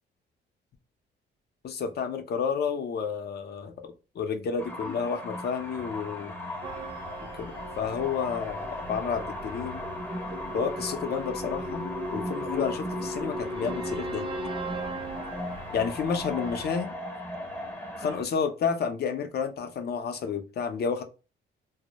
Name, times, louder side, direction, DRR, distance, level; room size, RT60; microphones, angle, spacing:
voice 1, 1.6-6.3 7.4-9.8 10.5-14.3 15.7-16.9 18.0-21.0, left 6 dB, 55° left, 0.6 m, -30 dB
sound 1, 4.6-18.2, left 2 dB, 10° left, 0.6 m, -37 dB
sound 2, 6.6-16.7, right 1 dB, 25° right, 0.3 m, -38 dB
2.1 x 2.0 x 2.8 m
cardioid pair, 90°, 20 cm